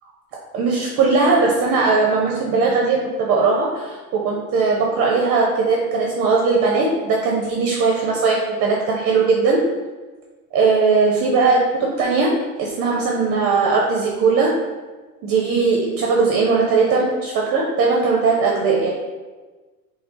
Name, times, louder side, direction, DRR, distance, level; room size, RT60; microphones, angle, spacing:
voice 1, 0.5-9.6 10.5-14.5 15.2-18.9, right 4 dB, 30° right, -2 dB, 0.5 m, -19 dB
4.3 x 2.0 x 4.0 m, 1.3 s
hypercardioid pair, 110°, 50 cm